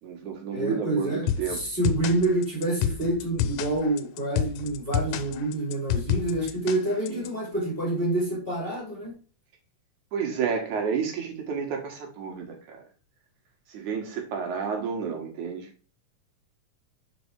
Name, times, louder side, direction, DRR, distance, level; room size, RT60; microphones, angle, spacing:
voice 1, 0.0-1.6 6.9-7.3 10.1-12.8 13.7-15.7, right 6 dB, 70° right, 2 dB, 2.9 m, -31 dB
voice 2, 0.5-9.2, right 2 dB, 20° left, -3 dB, 2.1 m, -27 dB
sound 1, 1.3-7.3, left 10 dB, 85° left, 2.1 m, -29 dB
5.5 x 4.6 x 4.6 m, 0.36 s
omnidirectional pair, 3.7 m